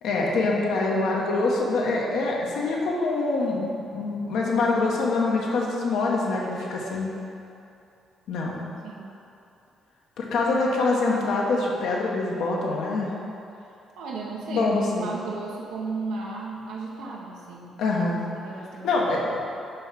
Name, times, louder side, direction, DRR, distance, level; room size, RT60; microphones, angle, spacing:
voice 1, 0.0-7.1 8.3-8.6 10.2-13.1 14.5-15.1 17.8-18.3 18.8-19.4, left 3 dB, 80° left, -3 dB, 1.2 m, -25 dB
voice 2, 8.8-9.1 14.0-17.8 18.4-19.1, right 3 dB, 90° right, -3 dB, 1.2 m, -35 dB
5.3 x 4.9 x 5.8 m, 2.7 s
cardioid pair, 90°, 0 cm